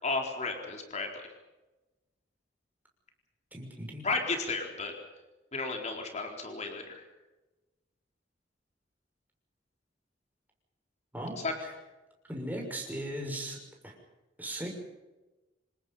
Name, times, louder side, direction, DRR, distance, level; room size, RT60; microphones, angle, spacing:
voice 1, 0.0-1.3 4.0-4.9 5.5-7.0 11.4-11.5, left 3 dB, 40° left, 3 dB, 4.1 m, -33 dB
voice 2, 3.5-4.0 11.1-11.7 12.3-13.6 13.8-13.9 14.4-14.7, right 1 dB, 10° right, 0 dB, 6.2 m, -38 dB
27.5 x 20.5 x 5.7 m, 1.1 s
head